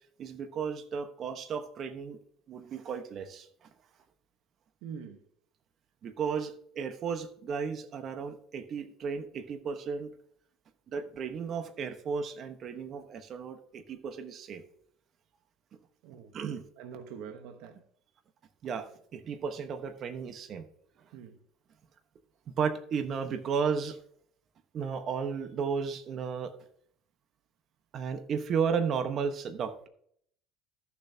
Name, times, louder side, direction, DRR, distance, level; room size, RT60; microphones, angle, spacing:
voice 1, 0.2-2.2 2.5-3.7 6.0-10.1 10.9-14.6 16.3-16.6 18.6-20.7 22.6-24.0 24.7-26.5 27.9-29.9, right 6 dB, 45° right, 1.2 m, -34 dB
voice 2, 4.8-5.3 16.0-16.4 16.8-17.8 21.1-21.4, right 7 dB, 75° right, 1.1 m, -44 dB
14.0 x 7.0 x 2.9 m
supercardioid pair, 115°, 0 cm